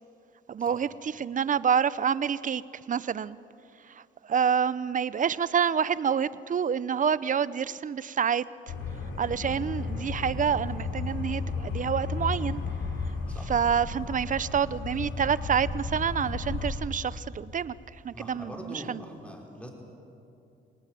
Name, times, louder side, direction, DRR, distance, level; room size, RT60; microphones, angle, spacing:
voice 1, 0.5-2.6 2.9-3.4 3.9-8.4 9.2-12.6 13.5-17.7 18.0-19.0, right 7 dB, 40° right, 18 dB, 0.7 m, -27 dB
sound 1, 8.7-16.7, left 4 dB, 80° left, 3.9 m, -33 dB
voice 2, 18.1-19.7, equal, 5° left, 0 dB, 5.2 m, -42 dB
26.5 x 18.5 x 9.3 m, 2.7 s
cardioid pair, 90°, 20 cm